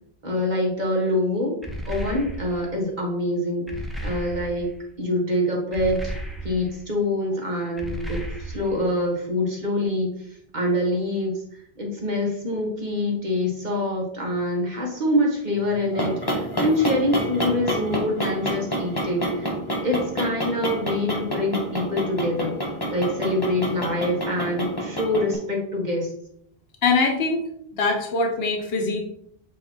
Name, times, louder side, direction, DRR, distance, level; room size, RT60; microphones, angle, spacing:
voice 1, 0.2-1.6 1.9-3.7 4.0-4.7 5.0-6.1 6.4-10.1 10.5-11.3 11.8-19.5 19.8-22.5 22.9-26.1, left 1 dB, 45° right, -2 dB, 1.6 m, -25 dB
sound 1, 1.6-2.7 3.7-4.8 5.7-6.8 7.8-8.9, right 1 dB, ahead, 0.9 m, -34 dB
sound 2, 15.7-25.4, equal, 25° left, 1.3 m, -28 dB
voice 2, 26.8-27.4 27.8-29.0, left 3 dB, 70° left, 2 dB, 1.3 m, -22 dB
8.2 x 2.8 x 4.4 m, 0.69 s
omnidirectional pair, 1.1 m